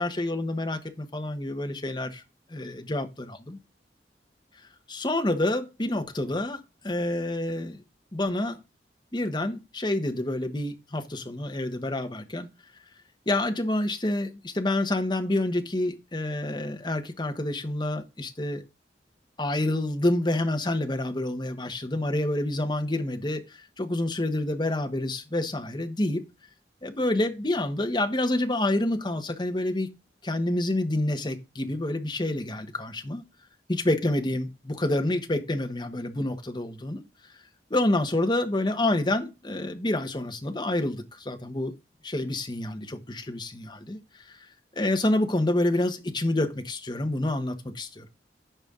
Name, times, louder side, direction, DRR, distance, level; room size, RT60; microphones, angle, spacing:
voice 1, 0.0-2.2 2.5-3.6 4.9-7.8 8.1-8.6 9.1-12.5 13.3-18.6 19.4-26.2 26.8-29.9 30.2-33.2 33.7-37.0 37.7-41.7 42.0-44.5 44.8-48.0, left 1 dB, 25° left, 1.1 m, -28 dB
14.5 x 5.2 x 2.4 m
head